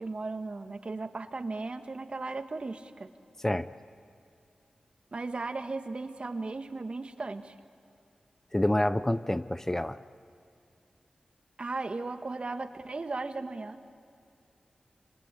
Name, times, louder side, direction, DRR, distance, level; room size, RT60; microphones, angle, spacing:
voice 1, 0.0-3.1 5.1-7.5 11.6-13.8, right 3 dB, 50° right, 7 dB, 1.6 m, -36 dB
voice 2, 8.5-10.0, left 1 dB, 20° left, 13 dB, 0.7 m, -27 dB
27.0 x 26.0 x 8.5 m, 2.5 s
cardioid pair, 45°, 2 cm